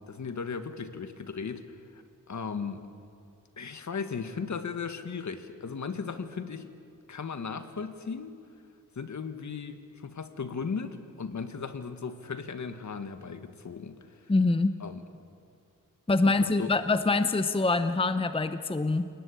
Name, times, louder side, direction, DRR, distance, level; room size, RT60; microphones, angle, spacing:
voice 1, 0.0-1.6 1.9-2.0 2.3-2.9 3.6-6.7 7.1-8.4 9.0-14.0 14.8-15.0 16.2-16.7, left 5 dB, 60° left, 9 dB, 1.8 m, -36 dB
voice 2, 14.3-14.8 16.1-19.1, left 3 dB, 15° left, 10 dB, 0.8 m, -25 dB
29.5 x 19.0 x 8.6 m, 2.5 s
wide cardioid pair, 120°, 33 cm